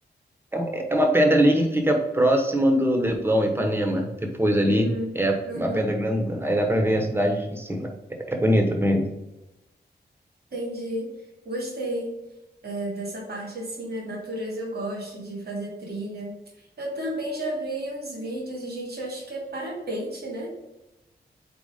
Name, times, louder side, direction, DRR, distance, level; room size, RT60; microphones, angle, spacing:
voice 1, 0.5-4.9 5.1-7.9 8.3-9.1, equal, 15° right, 3 dB, 1.1 m, -22 dB
voice 2, 4.6-5.2 5.4-5.9 10.5-11.1 11.4-12.1 12.6-16.3 16.8-20.5, right 1 dB, 70° right, -3 dB, 2.2 m, -32 dB
4.3 x 4.2 x 5.1 m, 0.97 s
wide cardioid pair, 100°, 17 cm